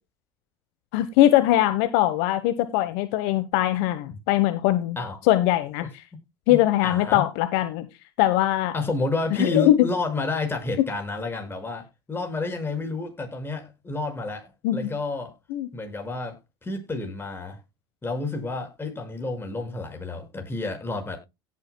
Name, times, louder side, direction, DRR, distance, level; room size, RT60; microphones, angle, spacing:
voice 1, 0.9-5.0 5.3-5.8 6.5-7.9 8.2-8.7 9.3-9.9 10.8-10.9 14.6-14.9 15.5-15.7, left 14 dB, 70° left, 1.2 m, -21 dB
voice 2, 6.5-7.2 8.7-15.3 15.7-16.4 16.6-17.6 18.0-21.2, left 3 dB, 20° left, 5.7 m, -30 dB
17.0 x 8.7 x 2.3 m
hypercardioid pair, 90°, 13 cm